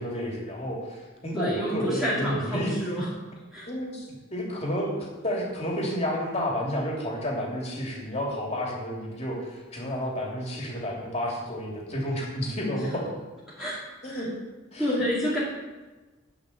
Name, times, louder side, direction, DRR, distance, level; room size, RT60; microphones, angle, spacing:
voice 1, 0.0-2.7 3.6-13.1 14.0-14.3 14.7-15.0, equal, 35° left, -2 dB, 3.0 m, -31 dB
voice 2, 1.3-3.1 3.5-3.7 13.6-14.3 14.8-15.4, equal, ahead, -9 dB, 2.4 m, -29 dB
10.0 x 5.9 x 8.1 m, 1.2 s
head